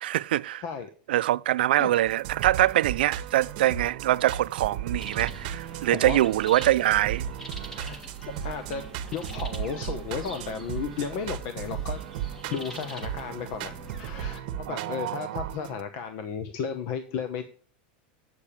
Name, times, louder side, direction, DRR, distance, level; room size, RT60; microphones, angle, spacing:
voice 1, 0.0-0.6 1.1-7.2 14.7-15.5, right 14 dB, 90° right, 0.4 m, -24 dB
sound 1, 2.1-15.8, right 10 dB, 55° right, 1.2 m, -36 dB
sound 2, 5.0-14.4, right 2 dB, 10° left, 1.4 m, -44 dB
voice 2, 7.7-8.8 9.1-17.4, left 6 dB, 45° left, 1.0 m, -34 dB
8.4 x 6.8 x 7.3 m
supercardioid pair, 165°, 5 cm